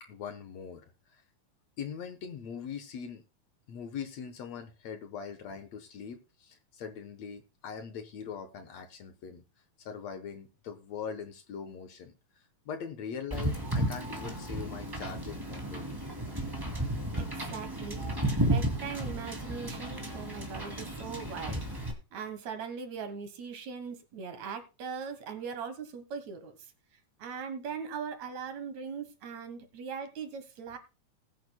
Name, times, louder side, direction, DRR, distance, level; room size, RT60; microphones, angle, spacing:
voice 1, 0.0-1.2 1.8-3.2 3.7-9.4 9.8-16.0, left 7 dB, 65° left, 9 dB, 2.0 m, -42 dB
Wind / Boat Water vehicle, 13.3-21.9, right 1 dB, 10° right, 2.0 m, -33 dB
voice 2, 17.2-26.7 27.2-30.8, right 6 dB, 65° right, 8 dB, 2.4 m, -40 dB
20.0 x 9.1 x 2.2 m, 0.31 s
omnidirectional pair, 3.7 m